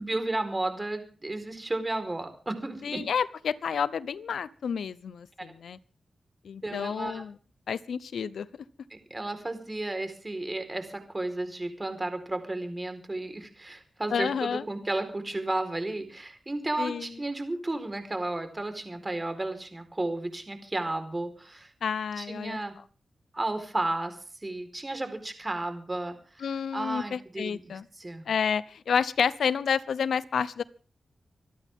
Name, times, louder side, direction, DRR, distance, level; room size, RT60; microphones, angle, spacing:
voice 1, 0.0-3.0 6.6-7.2 8.9-21.7 22.2-22.7 23.3-24.2 24.4-26.5 26.7-28.2, right 2 dB, 25° right, 8 dB, 4.4 m, -33 dB
voice 2, 2.8-5.8 6.4-7.4 7.7-8.5 14.1-14.6 16.8-17.1 21.8-22.6 26.4-27.9 28.3-30.6, left 7 dB, 85° left, 18 dB, 0.8 m, -30 dB
26.5 x 12.5 x 3.7 m, 0.39 s
cardioid pair, 55°, 0 cm